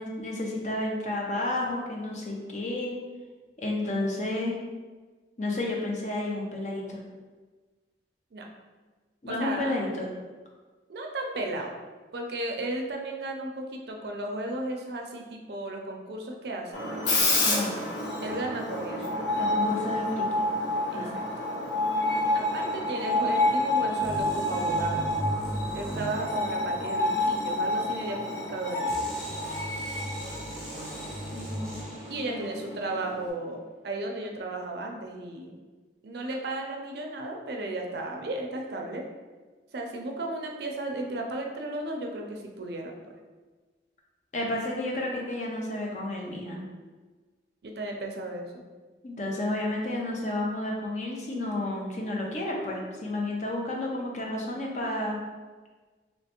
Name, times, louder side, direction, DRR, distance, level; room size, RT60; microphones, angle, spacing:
voice 1, 0.0-2.9 3.6-4.5 5.4-7.0 9.2-10.1 17.4-17.8 19.4-20.3 20.9-21.2 31.3-31.8 32.3-32.5 44.3-46.6 49.0-55.2, left 1 dB, 40° left, -1 dB, 0.6 m, -31 dB
voice 2, 9.3-9.7 10.9-11.8 12.1-16.8 18.2-19.1 20.9-21.2 22.3-25.1 25.7-29.0 32.1-35.5 36.0-39.1 39.7-43.0 47.6-48.6, right 2 dB, 65° right, 2 dB, 0.5 m, -34 dB
Screech, 16.7-33.3, left 1 dB, 80° left, 0.9 m, -29 dB
sound 1, 24.0-26.9 28.9-32.3, equal, 5° left, 0.7 m, -37 dB
3.2 x 3.1 x 2.9 m, 1.3 s
head